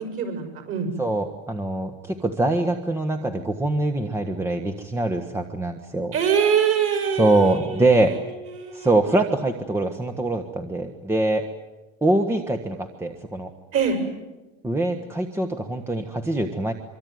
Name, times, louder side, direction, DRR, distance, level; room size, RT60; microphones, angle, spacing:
voice 1, 0.0-0.9 6.1-8.2 8.5-8.9 13.7-14.0, right 7 dB, 40° right, 6 dB, 6.8 m, -24 dB
voice 2, 1.0-6.2 7.2-8.1 8.7-11.4 12.0-13.5 14.6-16.7, right 2 dB, 5° right, 5 dB, 1.5 m, -23 dB
24.5 x 24.5 x 9.5 m, 1.1 s
supercardioid pair, 145°, 35 cm